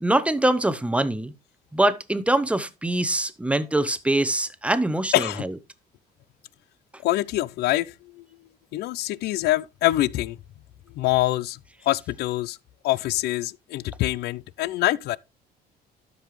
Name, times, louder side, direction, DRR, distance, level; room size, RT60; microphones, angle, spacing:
voice 1, 0.0-1.3 1.7-5.5, right 1 dB, 5° right, 0.7 m, -23 dB
voice 2, 5.1-5.4 7.0-8.3 8.7-10.4 10.9-11.6 11.9-12.6 12.8-15.2, left 16 dB, 75° left, 0.5 m, -25 dB
12.5 x 5.3 x 3.1 m
cardioid pair, 110°, 17 cm